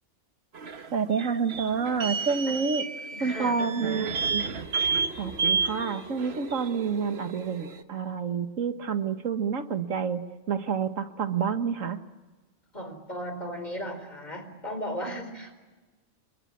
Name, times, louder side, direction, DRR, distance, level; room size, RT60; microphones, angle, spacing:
sound 1, 0.5-7.8, right 5 dB, 55° right, 1.4 m, -31 dB
voice 1, 0.9-2.9 3.2-4.4 5.2-12.0, right 6 dB, 90° right, 8 dB, 1.8 m, -28 dB
voice 2, 3.1-4.2 12.7-15.6, equal, 35° left, 7 dB, 4.4 m, -36 dB
29.0 x 23.0 x 8.6 m, 1.2 s
omnidirectional pair, 1.3 m